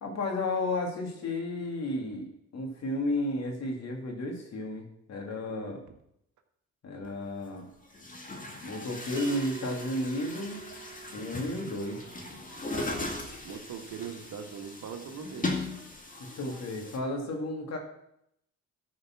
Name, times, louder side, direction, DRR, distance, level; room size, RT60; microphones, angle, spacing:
voice 1, 0.0-5.8 6.8-7.7 8.6-10.6 11.1-12.0 16.2-17.8, left 1 dB, 60° left, 2 dB, 2.6 m, -33 dB
Chatter / Gurgling / Tap, 7.0-7.1 7.9-17.0, left 2 dB, 25° left, 2.2 m, -38 dB
Bell, 9.2-14.2, right 9 dB, 30° right, 1.7 m, -48 dB
voice 2, 13.4-15.5, right 7 dB, 70° right, 5 dB, 1.6 m, -41 dB
13.0 x 5.2 x 6.0 m, 0.76 s
cardioid pair, 90°, 30 cm